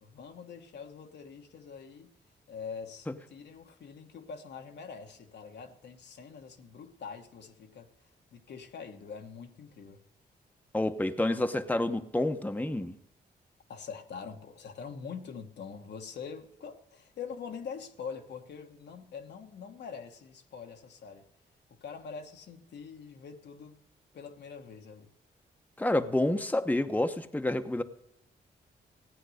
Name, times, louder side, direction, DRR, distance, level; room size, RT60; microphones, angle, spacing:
voice 1, 0.0-2.1 2.5-7.9 8.3-10.0 13.7-21.3 21.7-23.8 24.1-25.1, left 6 dB, 75° left, 1.4 m, -44 dB
voice 2, 10.7-12.9 25.8-27.8, left 1 dB, 10° left, 1.0 m, -28 dB
16.0 x 9.0 x 6.5 m
cardioid pair, 65°, 18 cm